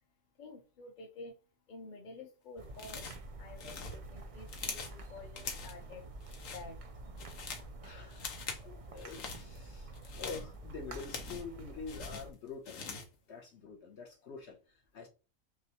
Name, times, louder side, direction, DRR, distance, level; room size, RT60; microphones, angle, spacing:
voice 1, 0.4-1.3 1.7-6.0 6.4-6.8 7.8-8.1, left 3 dB, 40° left, 1.0 m, -50 dB
sound 1, 2.6-12.3, right 2 dB, 55° right, 0.4 m, -48 dB
sound 2, 2.8-3.3 3.6-5.0 5.4-5.8 6.2-6.6 7.0-7.7 8.1-8.7 9.0-9.4 9.9-11.5 11.9-13.2, left 5 dB, 85° left, 1.3 m, -43 dB
voice 2, 7.8-8.3 8.6-12.8 13.3-15.1, left 5 dB, 60° left, 1.1 m, -46 dB
5.9 x 2.4 x 2.9 m
omnidirectional pair, 1.4 m